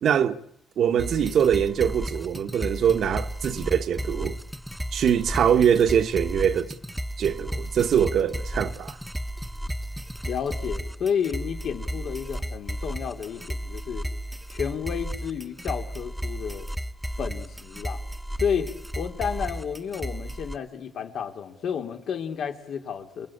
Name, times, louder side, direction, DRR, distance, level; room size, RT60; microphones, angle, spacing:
voice 1, 0.0-0.4 0.8-4.4 4.9-6.7 7.2-9.0, right 8 dB, 65° right, 1.3 m, -23 dB
sound 1, 1.0-20.6, equal, 5° right, 1.2 m, -34 dB
voice 2, 10.2-14.0 14.5-16.7 17.2-18.0 18.4-18.7 18.9-23.3, left 7 dB, 70° left, 3.2 m, -31 dB
28.5 x 21.5 x 8.8 m
cardioid pair, 90°, 0 cm